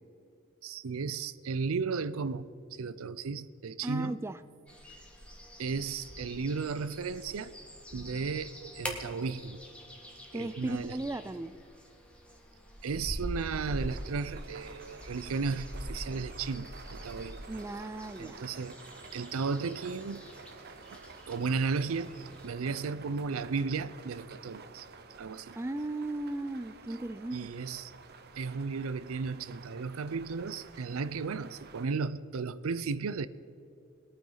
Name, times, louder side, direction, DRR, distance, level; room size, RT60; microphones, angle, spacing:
voice 1, 0.6-4.1 5.6-7.6 7.9-9.6 10.3-11.0 12.8-17.4 18.2-18.8 19.1-20.2 21.3-24.9 25.2-25.6 27.3-27.9 28.4-33.3, right 4 dB, 80° right, 16 dB, 0.5 m, -34 dB
voice 2, 3.8-4.4 10.3-11.5 17.5-18.4 25.5-27.5, right 2 dB, 10° right, 12 dB, 0.3 m, -36 dB
sound 1, 4.7-22.5, equal, 5° left, 1.5 m, -45 dB
sound 2, 13.5-31.9, right 4 dB, 50° right, 0.8 m, -51 dB
21.0 x 9.2 x 4.0 m, 2.7 s
head